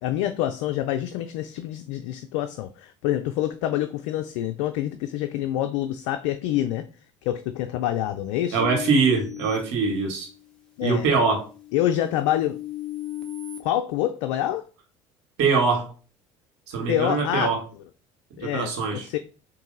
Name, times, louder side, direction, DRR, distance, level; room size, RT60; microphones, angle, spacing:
voice 1, 0.0-6.9 7.2-8.6 10.8-11.1 11.7-12.6 13.6-14.7 16.9-17.5 18.4-19.2, left 12 dB, 75° left, 0.4 m, -26 dB
voice 2, 8.5-10.3 10.8-11.5 15.4-15.9 16.7-17.6 18.4-19.1, right 4 dB, 75° right, 1.4 m, -23 dB
sound 1, 8.6-10.5 11.1-13.6, left 14 dB, 5° left, 1.2 m, -37 dB
3.9 x 2.6 x 3.8 m
hypercardioid pair, 65°, 15 cm